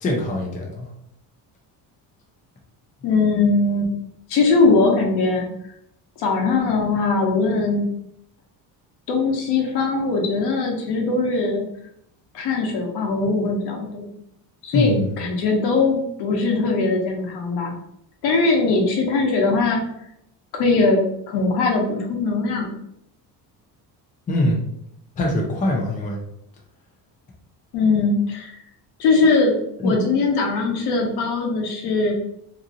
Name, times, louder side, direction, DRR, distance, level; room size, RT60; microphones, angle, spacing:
voice 1, 0.0-0.9 14.7-15.1 24.3-24.6 25.2-26.2 29.8-30.0, left 1 dB, 20° left, -1 dB, 0.5 m, -23 dB
voice 2, 3.0-3.9 4.3-5.5 6.2-7.8 9.1-11.7 12.3-14.1 14.6-17.8 18.2-19.8 20.5-22.7 27.7-28.6 29.0-29.6 29.8-32.1, left 3 dB, 75° left, 0 dB, 1.0 m, -20 dB
2.9 x 2.5 x 3.7 m, 0.75 s
cardioid pair, 170°, 39 cm